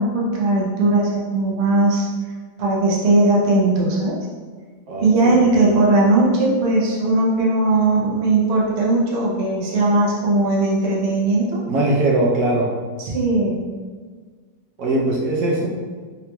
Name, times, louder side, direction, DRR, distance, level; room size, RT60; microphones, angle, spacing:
voice 1, 0.0-2.1 2.6-4.1 5.0-11.6 13.0-13.6, right 2 dB, 90° right, -4 dB, 0.5 m, -18 dB
voice 2, 4.9-5.5 11.7-12.7 14.8-15.7, right 2 dB, 65° right, -4 dB, 1.1 m, -20 dB
3.9 x 2.8 x 2.2 m, 1.5 s
omnidirectional pair, 2.1 m